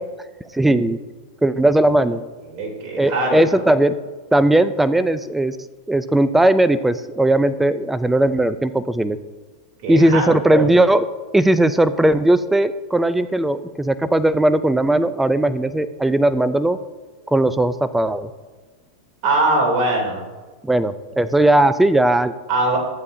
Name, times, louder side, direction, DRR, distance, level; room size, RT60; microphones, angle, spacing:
voice 1, 0.5-1.0 1.4-2.2 3.0-4.0 4.3-5.6 5.9-9.2 9.9-11.1 11.3-16.8 17.3-18.3 20.6-22.3, right 1 dB, 5° right, 13 dB, 0.4 m, -17 dB
voice 2, 2.5-3.4 9.8-10.6 19.2-20.2 22.5-22.8, right 2 dB, 45° right, -1 dB, 3.2 m, -21 dB
12.5 x 8.4 x 2.7 m, 1.3 s
hypercardioid pair, 115°, 3 cm